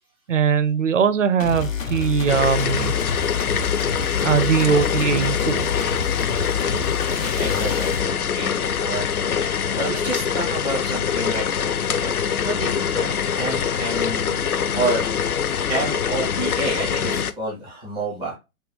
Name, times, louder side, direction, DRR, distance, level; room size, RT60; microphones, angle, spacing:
voice 1, 0.3-2.9 4.2-5.6, right 6 dB, 60° right, 0.6 m, -20 dB
sound 1, 1.4-8.1, left 5 dB, 65° left, 1.0 m, -28 dB
sound 2, 2.3-17.3, left 7 dB, 85° left, 0.5 m, -24 dB
voice 2, 6.6-11.5 12.0-12.1 12.4-14.4 14.7-15.0 15.7-18.3, right 1 dB, 5° left, 0.4 m, -29 dB
5.2 x 2.3 x 3.1 m
figure-of-eight pair, 125°, 43 cm